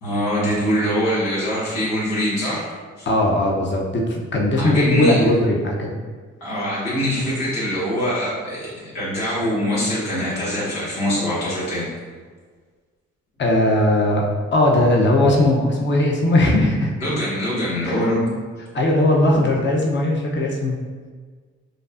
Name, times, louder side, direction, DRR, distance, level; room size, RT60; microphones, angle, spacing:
voice 1, 0.0-2.7 3.0-3.1 4.5-5.2 6.4-11.9 17.0-18.3, equal, 90° left, -9 dB, 1.3 m, -23 dB
voice 2, 3.1-5.9 13.4-14.2 14.5-16.9 17.8-18.1 18.7-20.8, left 1 dB, 35° left, -1 dB, 0.7 m, -18 dB
5.0 x 2.3 x 2.5 m, 1.5 s
hypercardioid pair, 40°, 33 cm